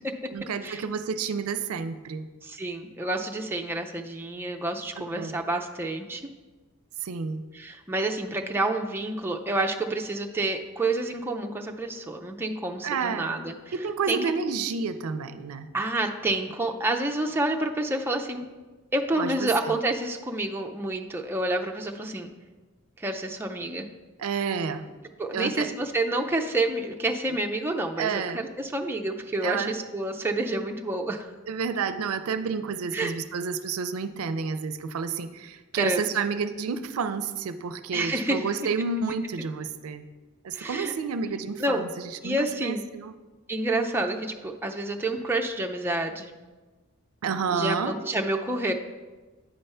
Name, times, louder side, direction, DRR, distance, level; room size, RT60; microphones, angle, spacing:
voice 1, 0.3-2.3 5.0-5.4 7.0-7.5 12.8-13.4 13.7-15.7 19.2-19.5 24.2-24.9 25.3-25.7 27.3-27.4 28.0-28.5 29.4-29.7 31.5-40.0 40.4-43.1 47.2-47.9, right 5 dB, 80° right, 11 dB, 0.4 m, -30 dB
voice 2, 2.4-6.2 7.5-13.5 14.1-14.2 15.7-18.4 18.9-22.3 23.0-23.9 25.2-31.3 32.9-33.1 35.8-36.0 37.9-38.4 40.5-40.9 41.6-41.8 42.2-42.8 43.5-46.3 47.5-48.7, right 2 dB, 10° right, 2 dB, 0.4 m, -28 dB
8.8 x 3.4 x 5.5 m, 1.3 s
head